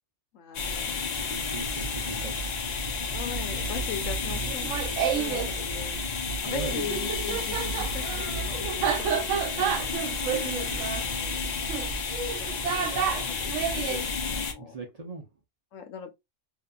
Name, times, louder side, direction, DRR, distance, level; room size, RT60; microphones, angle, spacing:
voice 1, 0.3-1.1 3.1-6.0 6.4-10.2 11.0-12.0 12.3-14.7 15.7-16.1, left 8 dB, 90° left, 1.1 m, -41 dB
sound 1, 0.5-14.5, left 3 dB, 50° left, 0.5 m, -31 dB
voice 2, 1.2-2.5 5.3-5.4 6.4-6.8 14.6-15.3, right 3 dB, 40° right, 0.6 m, -38 dB
Laughter, 4.5-5.5 6.8-14.1, right 8 dB, 80° right, 0.9 m, -30 dB
2.8 x 2.4 x 2.2 m
omnidirectional pair, 1.3 m